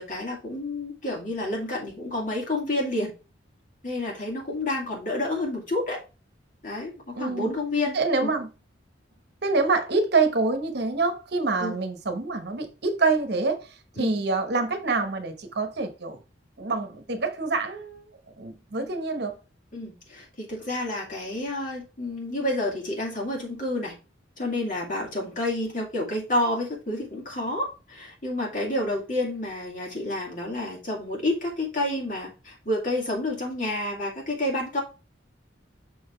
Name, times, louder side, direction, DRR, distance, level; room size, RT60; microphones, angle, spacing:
voice 1, 0.0-3.1 3.8-6.0 6.6-8.3 11.6-11.8 14.0-14.1 19.7-24.0 24.4-34.8, left 1 dB, 45° left, 2.4 m, -29 dB
voice 2, 7.2-7.5 7.9-8.5 9.4-16.2 16.6-18.0 18.4-19.4, right 3 dB, 60° right, 1.0 m, -26 dB
6.1 x 4.0 x 4.3 m
head